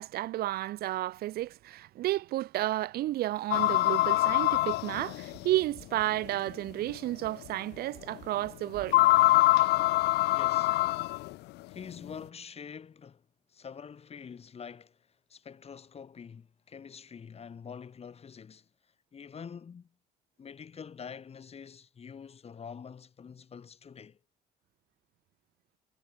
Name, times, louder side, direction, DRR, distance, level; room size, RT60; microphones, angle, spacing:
voice 1, 0.0-9.0, right 15 dB, 65° right, 0.6 m, -32 dB
sound 1, 3.5-5.5 6.3-6.4 6.9-7.0 8.9-11.3, left 19 dB, 80° left, 0.7 m, -24 dB
voice 2, 10.3-10.8 11.7-18.7 19.1-19.9 20.4-24.2, left 6 dB, 35° left, 5.2 m, -46 dB
cardioid pair, 110°, 17 cm